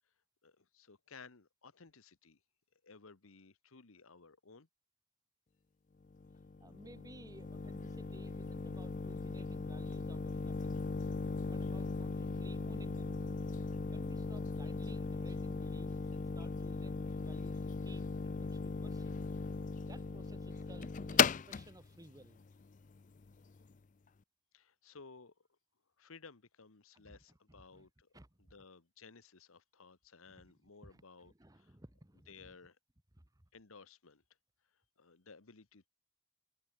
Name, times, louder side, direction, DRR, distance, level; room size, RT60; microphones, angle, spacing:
voice 1, 0.4-2.4 2.8-4.7 24.5-25.5 26.0-28.1 28.5-31.8 32.3-32.8 33.5-34.2 35.0-35.9, left 4 dB, 75° left, 1.2 m, -57 dB
sound 1, 6.1-23.7, left 5 dB, 35° left, 0.4 m, -38 dB
voice 2, 6.6-10.8 11.5-13.2 13.9-19.3 19.8-22.4 26.9-27.9 28.1-28.5 30.3-32.6 33.2-33.4, right 1 dB, 15° right, 1.1 m, -58 dB
head